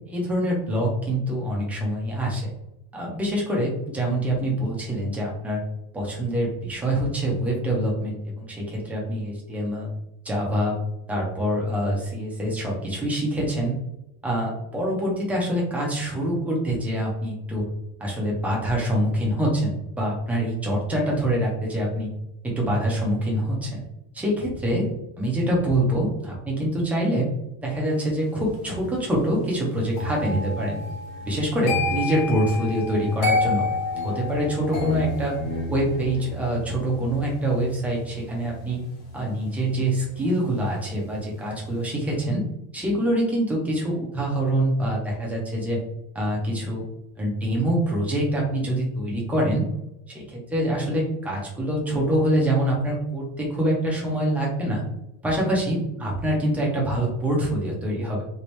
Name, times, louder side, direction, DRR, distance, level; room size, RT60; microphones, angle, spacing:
voice 1, 0.1-2.5 2.9-5.6 5.9-9.9 10.2-10.7 11.1-13.7 14.2-17.6 18.0-22.1 22.4-23.8 24.1-24.9 25.2-27.3 27.6-30.8 31.2-33.7 34.0-35.4 35.7-38.8 39.1-42.4 42.7-45.8 46.1-46.8 47.2-49.6 50.1-54.8 55.2-58.2, right 1 dB, 5° right, -3 dB, 0.4 m, -25 dB
sound 1, 29.9-40.9 41.2-41.6, left 2 dB, 50° left, 1.1 m, -30 dB
2.9 x 2.5 x 3.1 m, 0.88 s
cardioid pair, 175°, 37 cm